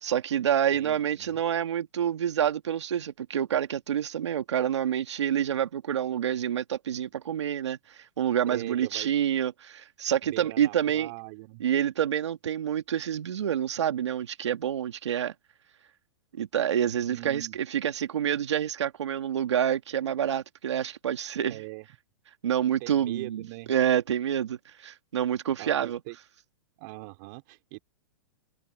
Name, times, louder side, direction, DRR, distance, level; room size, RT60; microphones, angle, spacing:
voice 1, 0.0-11.1 11.6-15.3 16.4-21.6 22.4-23.4 23.7-26.0, right 9 dB, 85° right, 2.1 m, -27 dB
voice 2, 0.7-1.4 8.5-9.1 10.2-11.6 17.1-17.6 21.5-21.9 22.8-23.7 25.6-26.2 26.8-27.8, right 24 dB, 45° right, 3.9 m, -41 dB
hypercardioid pair, 145°, 14 cm